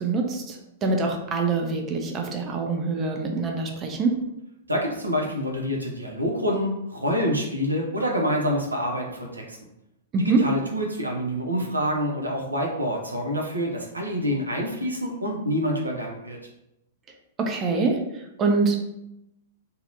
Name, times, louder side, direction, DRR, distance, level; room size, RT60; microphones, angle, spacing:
voice 1, 0.0-4.2 10.1-10.5 17.4-18.8, right 3 dB, 25° right, 2 dB, 0.4 m, -25 dB
voice 2, 4.7-9.6 10.2-16.4, equal, 90° right, 0 dB, 0.5 m, -27 dB
2.6 x 2.0 x 2.6 m, 0.86 s
figure-of-eight pair, 105°, 0 cm